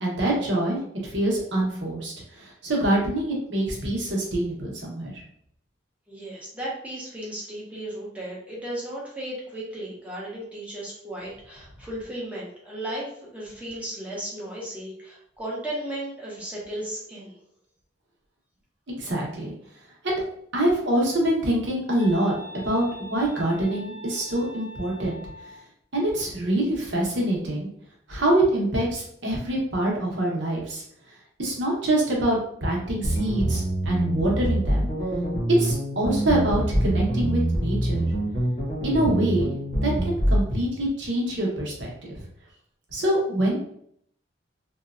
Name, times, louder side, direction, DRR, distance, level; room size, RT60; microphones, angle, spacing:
voice 1, 0.0-5.2 19.0-19.5 20.0-20.2 20.5-22.3 22.6-25.5 25.9-27.7 28.1-30.8 31.4-34.9 35.6-38.1 38.8-39.5 39.8-42.2 42.9-43.6, right 1 dB, 70° right, -2 dB, 0.9 m, -25 dB
voice 2, 6.1-17.4, right 1 dB, 5° right, -5 dB, 0.8 m, -35 dB
sound 1, 22.0-25.6, left 1 dB, 20° right, 0.4 m, -42 dB
sound 2, 33.0-40.4, right 1 dB, 35° left, 0.8 m, -25 dB
2.8 x 2.2 x 2.4 m, 0.68 s
head